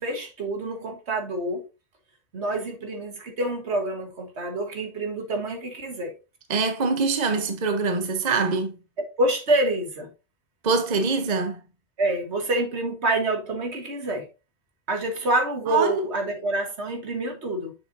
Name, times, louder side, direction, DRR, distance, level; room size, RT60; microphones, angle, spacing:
voice 1, 0.0-1.7 2.3-6.1 9.0-10.1 12.0-14.3 14.9-17.7, right 1 dB, 75° right, 1.7 m, -27 dB
voice 2, 6.5-8.7 10.6-11.6 15.7-16.0, right 4 dB, 40° right, 1.1 m, -24 dB
7.2 x 6.7 x 2.7 m
omnidirectional pair, 1.1 m